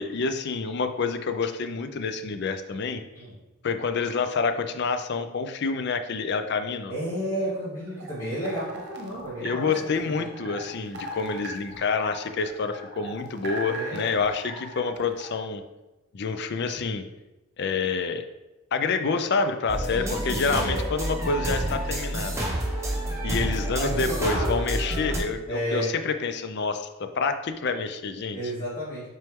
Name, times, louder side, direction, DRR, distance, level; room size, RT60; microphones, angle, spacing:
voice 1, 0.0-3.0 3.6-6.9 9.4-15.6 16.1-17.0 17.6-18.2 18.7-22.5 23.2-28.4, left 4 dB, 50° left, 9 dB, 0.5 m, -28 dB
voice 2, 6.9-9.7 10.0-10.5 13.7-14.0 19.9-20.8 23.8-24.5 25.5-25.9 28.3-29.1, equal, 25° left, -12 dB, 2.1 m, -32 dB
sound 1, 7.8-15.4, right 1 dB, 50° right, 1.0 m, -40 dB
sound 2, 19.7-25.2, right 1 dB, 15° right, 1.0 m, -29 dB
5.9 x 4.5 x 3.6 m, 1.0 s
head